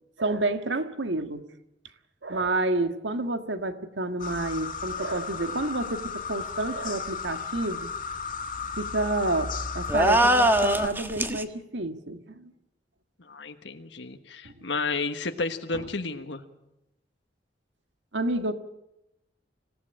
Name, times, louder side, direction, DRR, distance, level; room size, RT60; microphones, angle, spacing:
voice 1, 0.2-1.5 2.2-7.9 8.8-12.5 14.4-14.6 15.7-15.9 18.1-18.5, right 2 dB, 85° right, 8 dB, 1.7 m, -29 dB
sound 1, 4.2-10.9, left 5 dB, 50° left, 2.3 m, -34 dB
sound 2, 9.9-11.4, right 1 dB, 10° right, 1.4 m, -22 dB
voice 2, 13.2-16.4, left 3 dB, 75° left, 6 dB, 1.4 m, -32 dB
26.0 x 16.5 x 8.9 m, 0.91 s
head